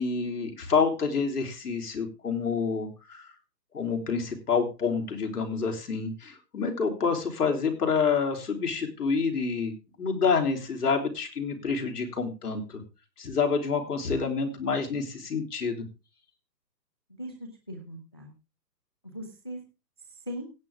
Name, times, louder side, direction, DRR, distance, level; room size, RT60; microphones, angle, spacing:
voice 1, 0.0-3.3 3.7-12.8 13.2-15.9, left 5 dB, 65° left, 4 dB, 3.6 m, -28 dB
voice 2, 17.2-18.3 19.0-19.6 20.1-20.5, equal, 15° left, 3 dB, 0.7 m, -39 dB
17.0 x 8.6 x 3.5 m, 0.28 s
hypercardioid pair, 170°, 50 cm